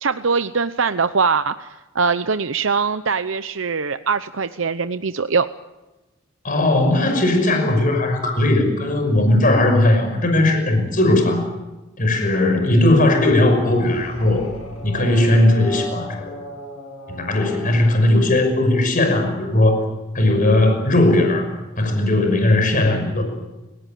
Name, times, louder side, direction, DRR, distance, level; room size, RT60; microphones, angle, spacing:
voice 1, 0.0-5.5, right 5 dB, 65° right, 11 dB, 0.8 m, -22 dB
voice 2, 6.4-11.5 12.0-14.5 14.8-16.3 17.1-19.8 20.1-21.5 21.8-23.2, left 1 dB, 40° left, 5 dB, 5.9 m, -17 dB
sound 1, 13.7-19.3, right 1 dB, 80° left, 7.1 m, -37 dB
29.0 x 18.0 x 9.2 m, 1.1 s
head